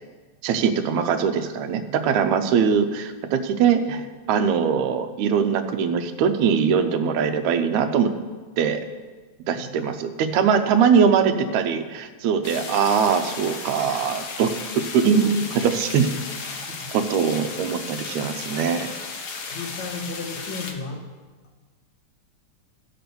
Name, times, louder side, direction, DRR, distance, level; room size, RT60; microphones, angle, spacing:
voice 1, 0.4-8.1 8.6-8.8 9.5-14.5 14.9-16.1 16.5-16.6 16.9-18.9, right 6 dB, 80° right, 8 dB, 2.1 m, -21 dB
sound 1, 12.4-20.7, left 4 dB, 85° left, 0.8 m, -35 dB
voice 2, 19.5-21.0, left 4 dB, 70° left, 0 dB, 2.7 m, -34 dB
14.5 x 6.0 x 6.9 m, 1.4 s
omnidirectional pair, 3.3 m